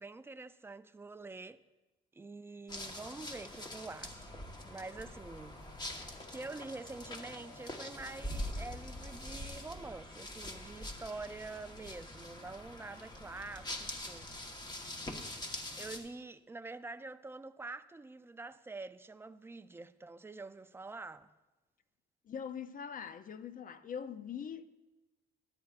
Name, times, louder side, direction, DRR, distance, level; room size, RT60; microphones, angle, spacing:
voice 1, 0.0-1.6 2.1-5.6 6.0-14.3 15.4-21.3, right 3 dB, 10° right, 0.4 m, -46 dB
sound 1, 2.7-16.0, left 1 dB, 20° left, 1.2 m, -44 dB
voice 2, 22.2-24.7, left 7 dB, 45° left, 0.5 m, -42 dB
13.5 x 10.5 x 2.4 m
cardioid pair, 90°, 20 cm